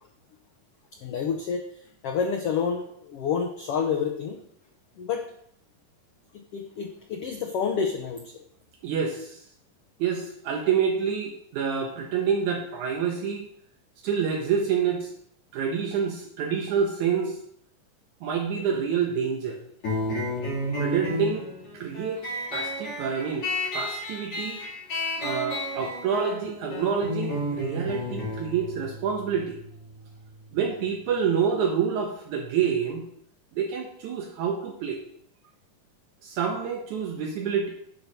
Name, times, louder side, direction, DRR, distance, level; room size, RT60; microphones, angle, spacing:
voice 1, 1.0-1.6 2.0-4.4 5.0-5.2 6.3-8.4, left 6 dB, 85° left, 4 dB, 1.3 m, -29 dB
voice 2, 8.8-9.4 10.0-13.5 14.0-15.1 15.5-17.4 18.2-19.6 20.8-21.5 21.7-23.5 23.7-24.6 25.2-29.6 30.5-33.1 33.5-35.0 36.2-37.7, right 7 dB, 70° right, 1 dB, 2.2 m, -27 dB
sound 1, 19.8-31.0, left 1 dB, 45° left, 4.0 m, -32 dB
11.0 x 4.6 x 5.4 m, 0.68 s
omnidirectional pair, 3.8 m